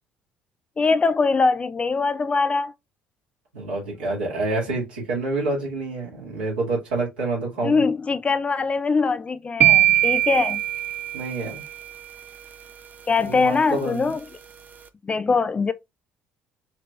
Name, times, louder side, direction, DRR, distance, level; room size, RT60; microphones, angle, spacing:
voice 1, 0.8-2.7 7.6-10.6 13.1-14.2 15.0-15.7, left 4 dB, 25° left, 0.4 m, -22 dB
voice 2, 3.5-7.9 11.1-11.6 13.2-14.1, right 2 dB, 75° right, 2.3 m, -27 dB
sound 1, 9.6-11.7, right 14 dB, 35° right, 0.6 m, -20 dB
4.7 x 3.3 x 2.4 m
figure-of-eight pair, 55°, 5 cm